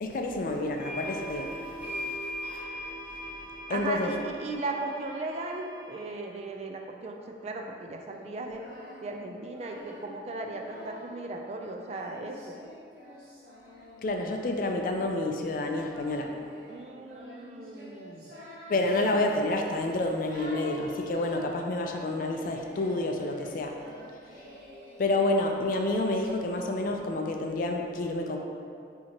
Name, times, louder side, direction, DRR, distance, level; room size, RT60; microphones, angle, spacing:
voice 1, 0.0-2.2 3.7-4.1 14.0-16.3 18.7-23.8 25.0-28.4, left 2 dB, 50° left, 3 dB, 0.3 m, -29 dB
sound 1, 0.8-6.1, equal, 5° right, 1.5 m, -39 dB
voice 2, 3.7-8.6 9.0-12.6 16.7-18.3, right 2 dB, 35° right, 2 dB, 0.3 m, -37 dB
Singing, 8.3-11.3 11.9-26.4, left 1 dB, 55° right, 1.1 m, -47 dB
5.8 x 2.8 x 2.8 m, 2.4 s
head